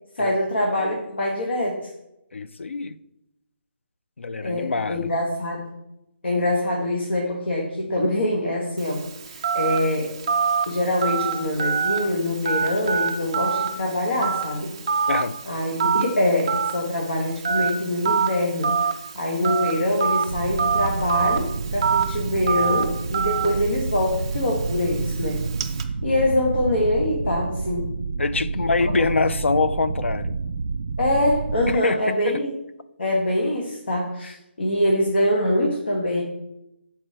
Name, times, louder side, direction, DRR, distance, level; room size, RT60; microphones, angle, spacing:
voice 1, 0.1-1.9 4.4-5.7 6.2-10.1 10.7-14.7 15.5-18.7 19.1-25.4 26.0-27.9 31.0-32.5 33.0-36.2, left 1 dB, 60° left, -1 dB, 1.5 m, -24 dB
voice 2, 2.3-3.0 4.2-5.1 15.1-15.4 28.2-30.3 31.7-32.0, left 4 dB, 90° left, 13 dB, 0.5 m, -24 dB
Telephone, 8.8-25.8, right 6 dB, 25° right, 0.4 m, -27 dB
sound 1, 20.3-31.8, right 4 dB, 90° right, 0.4 m, -29 dB
6.6 x 4.4 x 4.3 m, 0.87 s
hypercardioid pair, 175°, 6 cm